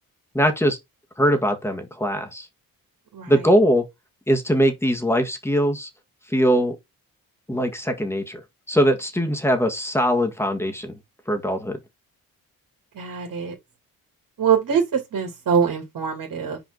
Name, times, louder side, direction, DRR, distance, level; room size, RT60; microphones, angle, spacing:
voice 1, 0.3-0.8 1.2-2.5 3.3-3.8 4.3-5.9 6.3-6.8 7.5-8.4 8.7-11.0 11.3-11.8, equal, 5° left, 1.8 m, -21 dB
voice 2, 3.1-3.5 12.9-13.5 14.4-16.6, right 7 dB, 65° right, 2.8 m, -23 dB
5.3 x 4.9 x 3.9 m
cardioid pair, 85°, 35 cm